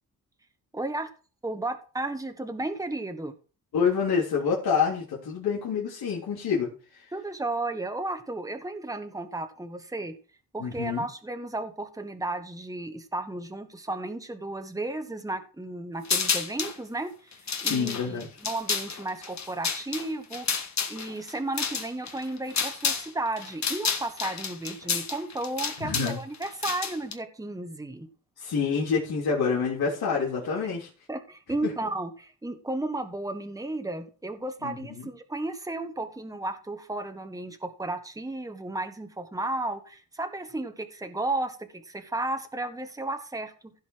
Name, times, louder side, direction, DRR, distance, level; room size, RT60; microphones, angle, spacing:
voice 1, 0.7-1.1 1.4-3.3 7.1-10.1 10.5-17.3 17.6-20.5 20.9-28.1 31.1-43.7, right 2 dB, 10° right, 7 dB, 1.4 m, -33 dB
voice 2, 3.7-7.0 10.6-11.1 17.6-18.3 25.8-26.2 28.4-30.9 31.6-31.7 34.6-35.1, left 6 dB, 90° left, -5 dB, 3.6 m, -27 dB
sound 1, 16.0-16.8 17.3-23.1 23.4-27.1, left 6 dB, 50° left, 1.6 m, -30 dB
16.0 x 5.6 x 4.7 m, 0.37 s
wide cardioid pair, 110°, 36 cm